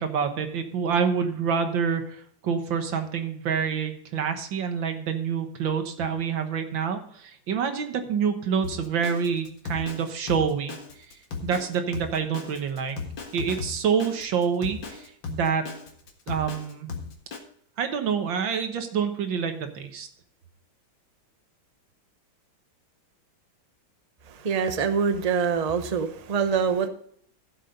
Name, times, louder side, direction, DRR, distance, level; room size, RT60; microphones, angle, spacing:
voice 1, 0.0-10.7 11.4-13.0 13.3-15.6 16.3-16.9 17.8-20.1, right 6 dB, 75° right, 7 dB, 2.0 m, -27 dB
Drum kit, 8.6-17.4, left 5 dB, 70° left, 2.4 m, -36 dB
voice 2, 24.4-26.9, right 6 dB, 35° right, 8 dB, 0.6 m, -24 dB
15.5 x 7.4 x 3.9 m, 0.63 s
omnidirectional pair, 2.1 m